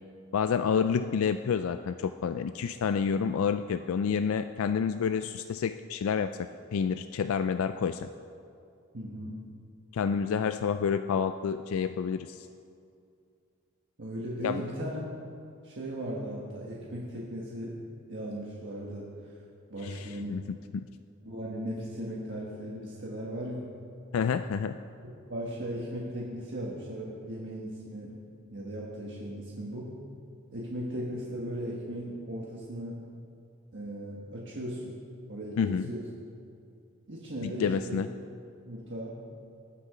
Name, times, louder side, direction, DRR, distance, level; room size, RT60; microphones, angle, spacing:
voice 1, 0.3-8.1 9.9-12.5 14.4-14.6 19.8-20.4 24.1-24.8 35.6-35.9 37.4-38.1, left 6 dB, 70° left, 10 dB, 0.3 m, -29 dB
voice 2, 8.9-9.4 14.0-15.1 15.6-17.7 18.1-19.3 19.7-20.3 21.2-23.6 25.3-28.1 28.5-29.9 30.5-33.0 33.7-35.0 35.3-36.0 37.1-38.0 38.6-39.2, equal, 55° right, -4 dB, 1.4 m, -37 dB
19.5 x 6.7 x 4.9 m, 2.4 s
head